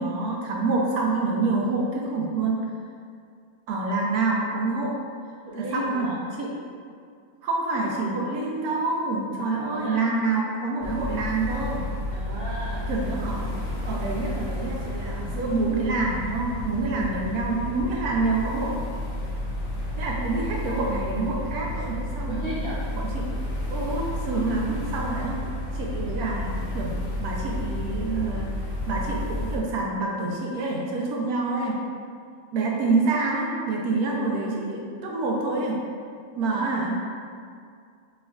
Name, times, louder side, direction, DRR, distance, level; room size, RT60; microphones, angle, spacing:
voice 1, 0.0-2.5 3.7-5.0 5.6-6.5 7.4-11.9 12.9-13.6 13.8-18.8 20.0-22.5 23.0-23.4 23.7-25.4 25.7-26.9 27.2-28.5 28.9-31.8 32.5-35.8 36.4-37.0, right 3 dB, 85° right, -2 dB, 1.2 m, -27 dB
voice 2, 5.4-6.2 9.7-10.1 12.1-12.9 22.3-22.9, equal, 55° right, -9 dB, 0.7 m, -34 dB
sound 1, 10.8-29.6, left 1 dB, 70° left, 1.1 m, -31 dB
5.2 x 3.4 x 2.3 m, 2.3 s
omnidirectional pair, 1.5 m